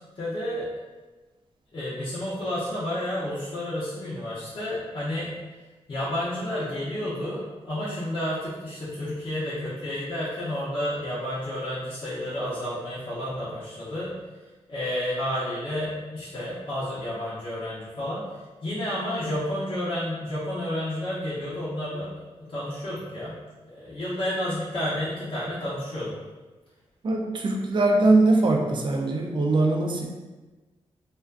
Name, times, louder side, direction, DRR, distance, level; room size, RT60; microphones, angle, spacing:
voice 1, 0.1-0.7 1.7-5.3 5.9-14.1 14.7-18.2 18.6-22.1 22.4-23.4 23.7-26.1, left 1 dB, 50° left, -10 dB, 0.7 m, -31 dB
voice 2, 27.0-30.0, right 2 dB, 45° right, 1 dB, 0.4 m, -21 dB
2.4 x 2.2 x 2.4 m, 1.2 s
cardioid pair, 70°, 11 cm